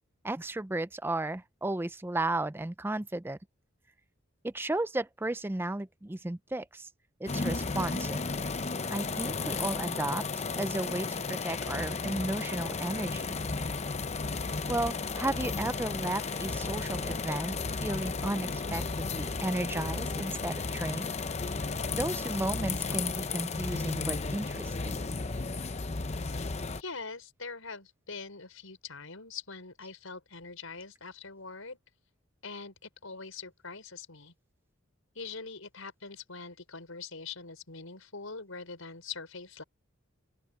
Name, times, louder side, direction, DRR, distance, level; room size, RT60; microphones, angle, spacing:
voice 1, 0.2-3.4 4.4-6.9 7.2-8.3 8.9-10.2 10.6-13.4 14.7-21.1 21.9-25.0, right 2 dB, 10° right, 0.4 m, -34 dB
sound 1, 7.3-26.8, left 4 dB, 35° left, 0.7 m, -34 dB
voice 2, 26.8-31.8 32.4-34.3 35.2-39.6, left 4 dB, 90° left, 5.3 m, -43 dB
open air
head